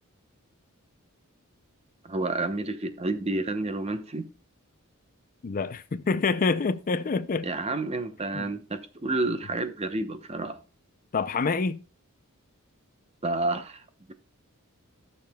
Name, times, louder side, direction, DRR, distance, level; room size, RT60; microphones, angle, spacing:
voice 1, 2.0-4.2 7.4-10.6 13.2-13.8, right 2 dB, 30° right, 0.9 m, -30 dB
voice 2, 5.4-7.5 8.3-8.5 11.1-11.8, left 4 dB, 40° left, 0.4 m, -27 dB
13.5 x 6.7 x 2.2 m
head